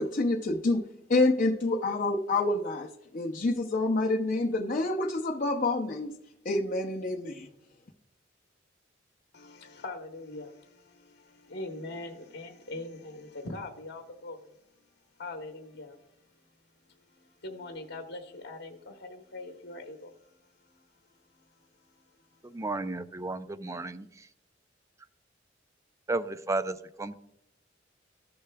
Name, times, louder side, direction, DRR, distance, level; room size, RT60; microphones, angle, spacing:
voice 1, 0.0-6.1 6.4-7.5, left 2 dB, 45° left, 0.6 m, -28 dB
voice 2, 9.3-14.6 15.2-16.0 16.9-21.7 21.9-22.6, left 2 dB, 65° left, 0.9 m, -43 dB
voice 3, 22.4-24.1 26.1-27.1, right 2 dB, 15° right, 0.4 m, -33 dB
14.5 x 6.7 x 2.2 m
head